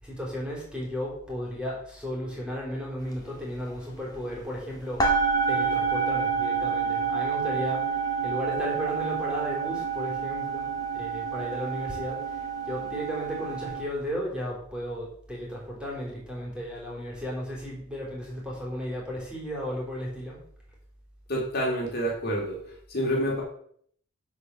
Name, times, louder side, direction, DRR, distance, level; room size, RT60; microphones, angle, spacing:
voice 1, 0.0-5.0 5.5-10.7 10.9-20.4, equal, 5° right, -4 dB, 3.9 m, -34 dB
sound 1, 3.1-3.3 3.5-4.6 5.0-13.8, right 5 dB, 20° left, 2.0 m, -28 dB
voice 2, 21.3-22.6 22.9-23.4, equal, 45° left, -2 dB, 3.2 m, -27 dB
11.5 x 4.9 x 7.2 m, 0.62 s
head